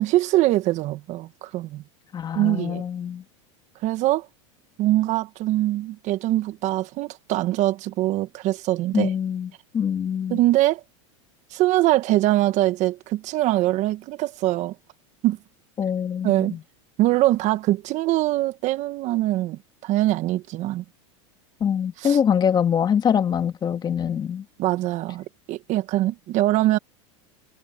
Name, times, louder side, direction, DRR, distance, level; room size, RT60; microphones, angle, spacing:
voice 1, 0.0-1.8 2.3-2.8 3.8-4.3 4.8-9.1 10.3-10.8 11.5-14.7 15.2-15.4 16.2-16.5 17.0-20.8 22.0-22.2 24.6-26.8, right 16 dB, 45° right, 1.4 m, -23 dB
voice 2, 2.1-3.2 8.9-10.4 15.8-16.6 21.6-24.4, left 8 dB, 25° left, 2.0 m, -24 dB
supercardioid pair, 120°, 16 cm